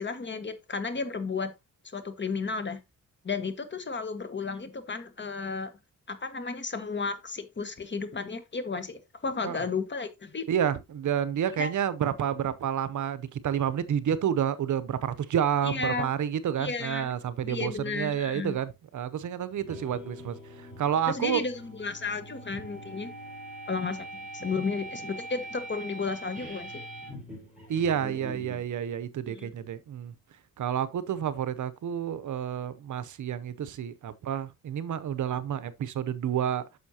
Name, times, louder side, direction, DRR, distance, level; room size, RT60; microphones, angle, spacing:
voice 1, 0.0-1.5 1.8-2.8 3.2-5.7 6.1-10.4 11.6-11.7 15.6-16.1 16.6-17.2 17.4-18.6 21.1-23.1 23.7-24.1 24.3-26.8 29.3-29.5, left 4 dB, 35° left, 1.3 m, -33 dB
voice 2, 10.5-21.4 27.7-30.1 30.6-36.6, right 9 dB, 60° right, 0.7 m, -29 dB
sound 1, 19.5-28.6, right 1 dB, ahead, 5.6 m, -43 dB
9.5 x 6.4 x 2.8 m
cardioid pair, 100°, 34 cm